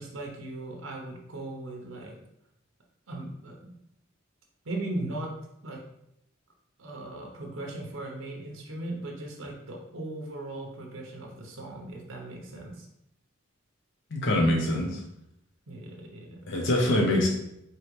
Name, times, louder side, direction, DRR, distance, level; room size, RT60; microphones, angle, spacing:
voice 1, 0.0-2.2 3.1-3.7 4.6-5.3 5.6-5.8 6.8-12.9 15.7-16.4, right 2 dB, 75° right, 0 dB, 0.8 m, -38 dB
voice 2, 14.1-15.0 16.5-17.3, left 1 dB, 60° left, -1 dB, 0.7 m, -24 dB
4.7 x 2.9 x 3.1 m, 0.79 s
head